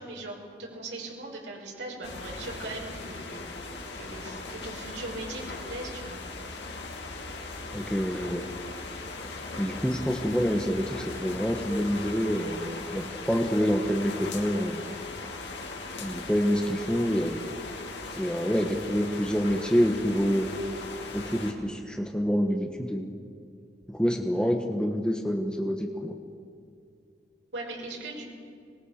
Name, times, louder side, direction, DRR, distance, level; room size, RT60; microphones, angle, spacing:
voice 1, 0.0-3.4 3.9-6.2 27.5-28.2, right 2 dB, 85° right, -1 dB, 5.7 m, -39 dB
sound 1, 2.0-21.5, left 3 dB, 80° left, 3.2 m, -39 dB
voice 2, 7.7-8.5 9.6-14.8 16.0-17.4 18.1-20.5 21.1-23.1 23.9-26.1, equal, 5° left, 2 dB, 1.4 m, -27 dB
26.0 x 20.0 x 6.6 m, 2.4 s
head